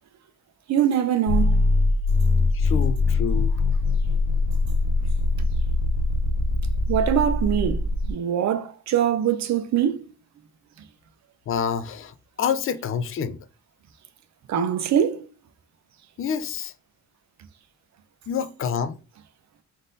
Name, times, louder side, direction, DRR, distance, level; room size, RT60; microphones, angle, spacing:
voice 1, 0.7-1.6 6.9-7.8 8.1-10.1 14.5-15.3, right 9 dB, 55° right, 0.6 m, -23 dB
sound 1, 1.3-8.1, left 2 dB, 65° left, 0.8 m, -22 dB
voice 2, 2.5-3.6 11.5-13.4 16.2-16.7 18.3-19.0, left 7 dB, 40° left, 0.4 m, -28 dB
3.9 x 2.6 x 3.8 m
cardioid pair, 130°, 33 cm